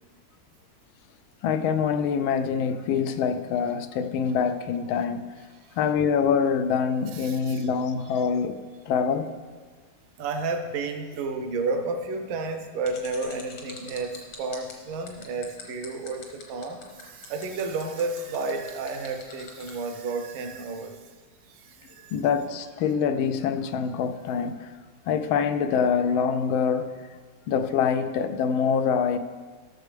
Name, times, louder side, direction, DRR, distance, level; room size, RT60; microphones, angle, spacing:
voice 1, 1.4-5.2 5.8-9.3 22.1-24.7 25.1-26.9 27.5-29.2, left 6 dB, 85° left, 1.4 m, -25 dB
voice 2, 7.1-7.7 8.1-8.2 10.2-21.1 21.4-22.2, right 3 dB, 80° right, 1.5 m, -32 dB
sound 1, 12.8-19.8, left 5 dB, 70° left, 2.1 m, -44 dB
15.0 x 6.6 x 3.3 m
omnidirectional pair, 2.2 m